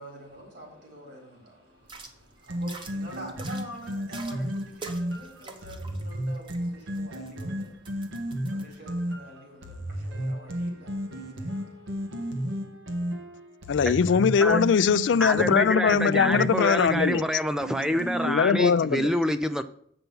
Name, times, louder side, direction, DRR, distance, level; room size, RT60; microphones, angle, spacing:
voice 1, 0.0-12.5, equal, 65° right, 4.0 m, -46 dB
sound 1, 1.8-8.8, right 3 dB, 25° right, 0.8 m, -47 dB
sound 2, 2.5-18.4, equal, 90° right, 1.3 m, -33 dB
voice 2, 13.7-17.2 18.2-19.1, left 6 dB, 70° left, 0.4 m, -21 dB
voice 3, 15.2-19.6, equal, 5° right, 0.3 m, -26 dB
7.9 x 5.8 x 5.4 m
head